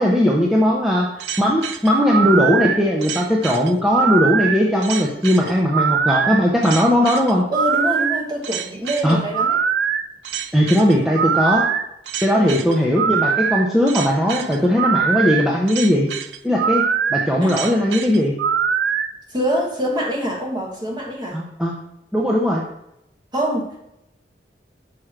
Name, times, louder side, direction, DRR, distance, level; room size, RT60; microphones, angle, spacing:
voice 1, 0.0-7.4 9.0-9.2 10.5-11.6 12.2-16.1 16.4-16.8 17.1-18.3 21.3-21.7 22.1-22.6, equal, 5° right, -3 dB, 0.5 m, -18 dB
sound 1, 1.2-19.1, right 7 dB, 85° right, 0.4 m, -22 dB
voice 2, 7.5-9.6 12.3-12.6 17.4-17.7 19.3-21.4 23.3-23.8, equal, 25° right, -1 dB, 1.2 m, -25 dB
5.9 x 4.9 x 3.2 m, 0.81 s
head